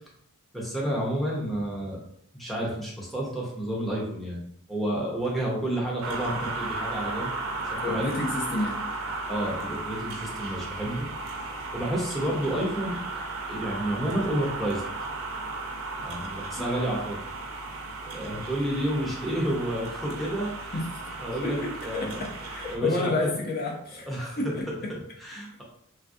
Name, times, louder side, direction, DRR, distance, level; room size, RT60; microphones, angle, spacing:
voice 1, 0.5-2.0 2.3-4.4 4.7-7.3 7.6-8.1 9.3-13.0 13.5-14.8 15.9-17.2 18.0-20.7 21.2-22.2 22.7-23.3 24.1-24.5 24.9-25.6, right 1 dB, ahead, -4 dB, 0.6 m, -30 dB
sound 1, 6.0-22.8, right 3 dB, 65° right, 0.5 m, -35 dB
voice 2, 7.8-8.8 16.6-16.8 20.7-24.1 24.4-24.9, left 2 dB, 45° left, -1 dB, 0.5 m, -31 dB
3.3 x 2.4 x 2.5 m, 0.70 s
head